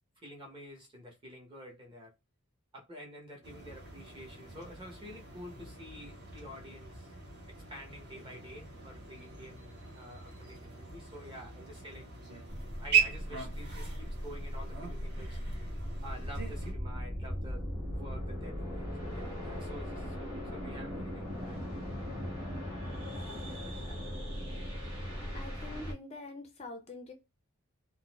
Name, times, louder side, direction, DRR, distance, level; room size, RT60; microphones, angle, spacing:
voice 1, 0.2-2.1 2.7-7.1 7.7-12.1 12.7-15.4 16.0-17.6 17.9-21.6 23.3-23.8, equal, 20° right, 0.9 m, -49 dB
sound 1, 3.4-16.7, right 7 dB, 45° right, 1.1 m, -38 dB
sound 2, 12.5-25.9, equal, 80° right, 1.4 m, -39 dB
voice 2, 25.3-27.1, left 2 dB, 30° left, 0.5 m, -45 dB
3.8 x 2.5 x 2.4 m
head